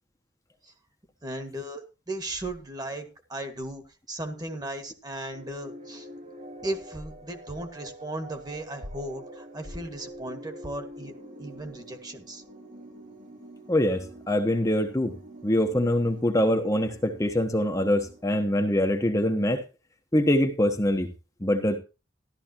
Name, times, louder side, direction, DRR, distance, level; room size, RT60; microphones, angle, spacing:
voice 1, 1.2-6.1 6.6-11.1 11.4-12.4, right 1 dB, 20° right, 7 dB, 1.8 m, -36 dB
sound 1, 5.3-19.1, right 1 dB, 40° right, 2.8 m, -46 dB
voice 2, 13.7-15.1 15.4-19.6 20.1-21.1 21.4-21.8, left 1 dB, 15° left, 4 dB, 1.1 m, -24 dB
13.5 x 12.5 x 2.9 m, 0.30 s
head